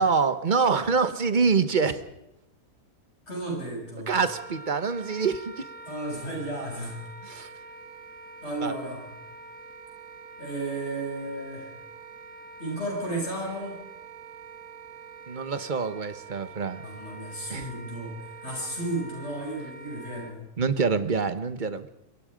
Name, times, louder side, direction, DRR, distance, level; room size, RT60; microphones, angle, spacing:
voice 1, 0.0-2.0 4.1-5.7 7.2-7.5 8.6-8.8 15.3-16.8 17.5-17.7 20.6-21.9, right 5 dB, 35° right, 12 dB, 1.1 m, -25 dB
voice 2, 3.3-4.1 5.8-7.0 8.4-9.0 10.4-11.7 12.6-13.8 16.8-18.2 18.4-20.5, right 1 dB, 45° left, -1 dB, 8.1 m, -33 dB
Wind instrument woodwind instrument, 4.3-20.3, right 4 dB, 55° right, 2.2 m, -45 dB
26.0 x 22.0 x 5.1 m, 0.86 s
omnidirectional pair, 1.6 m